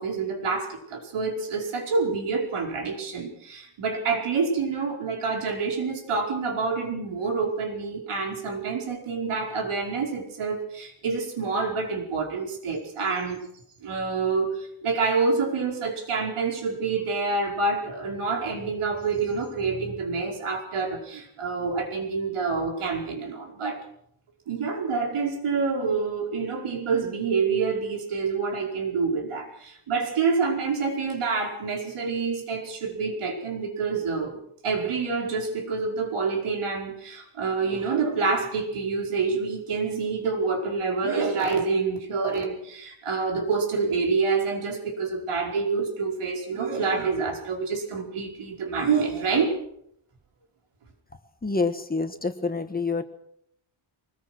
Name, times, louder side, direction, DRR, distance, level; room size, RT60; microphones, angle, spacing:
voice 1, 0.0-13.4 13.8-23.8 24.5-34.4 34.6-49.6, right 4 dB, 80° right, 2 dB, 5.2 m, -27 dB
voice 2, 51.4-53.0, left 4 dB, 20° left, 7 dB, 1.5 m, -27 dB
24.5 x 20.5 x 6.2 m, 0.74 s
wide cardioid pair, 170°, 49 cm